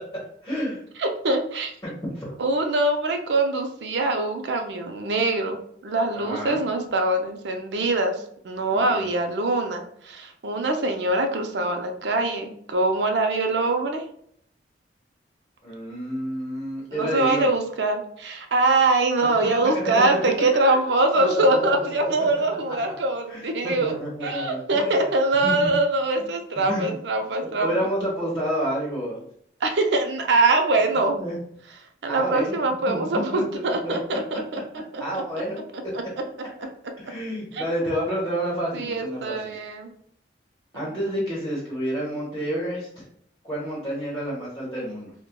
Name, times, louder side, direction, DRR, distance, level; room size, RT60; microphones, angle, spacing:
voice 1, 0.4-0.8 1.8-2.3 6.1-6.6 8.7-9.0 15.6-17.5 19.2-19.3 19.8-20.3 21.1-21.8 23.3-24.9 25.4-25.7 26.2-26.3 26.7-26.9 27.6-29.2 31.2-31.4 32.1-32.5 32.9-33.1 33.3-33.4 33.8-34.2 35.0-35.6 37.0-39.3 40.7-43.0 43.4-45.1, equal, 15° left, -6 dB, 1.0 m, -29 dB
voice 2, 1.0-1.7 2.4-5.6 5.8-8.1 8.4-14.0 16.9-27.7 29.6-31.2 32.0-34.6 34.9-35.0 35.9-36.0 37.5-37.6 38.7-39.9 40.7-40.9, right 2 dB, 75° right, 4 dB, 0.5 m, -23 dB
4.2 x 2.2 x 2.2 m, 0.68 s
head